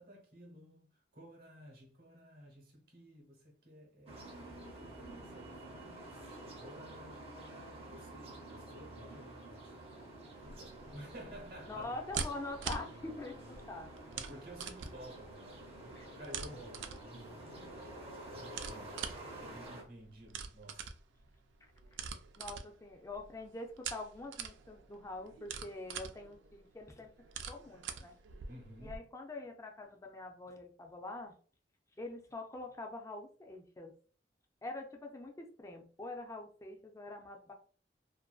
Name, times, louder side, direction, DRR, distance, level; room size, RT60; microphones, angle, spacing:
voice 1, 0.0-9.7 10.0-12.0 14.1-17.5 18.1-20.9 28.5-29.0, equal, 60° right, 0.9 m, -53 dB
sound 1, 4.1-19.8, right 1 dB, 35° right, 0.6 m, -49 dB
sound 2, 10.4-29.0, right 6 dB, 80° right, 0.3 m, -46 dB
voice 2, 11.7-13.9 16.0-16.1 22.3-27.1 27.5-28.2 28.8-31.4 32.0-33.9 34.6-37.5, left 2 dB, 15° left, 0.4 m, -45 dB
2.5 x 2.2 x 2.3 m
head